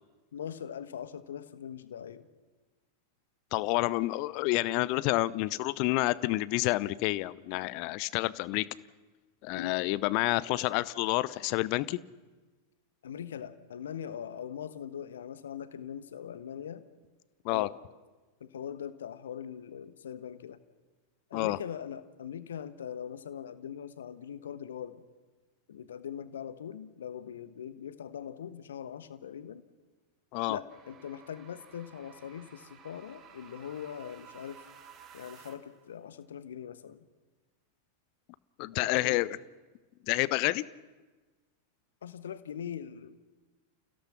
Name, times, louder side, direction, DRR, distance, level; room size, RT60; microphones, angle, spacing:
voice 1, 0.3-2.3 9.5-9.7 13.0-16.8 17.5-17.7 18.4-20.6 21.3-25.0 25.7-29.6 30.5-34.6 35.1-37.1 38.7-39.2 42.0-43.1, left 8 dB, 65° left, 13 dB, 1.2 m, -41 dB
voice 2, 3.5-8.7 9.4-12.0 17.4-17.7 21.3-21.6 30.3-30.6 38.6-39.4 40.1-40.6, left 19 dB, 45° left, 20 dB, 0.7 m, -29 dB
sound 1, 30.7-35.8, right 7 dB, 35° right, 2.6 m, -54 dB
30.0 x 16.5 x 5.9 m, 1.3 s
figure-of-eight pair, 90°, 0 cm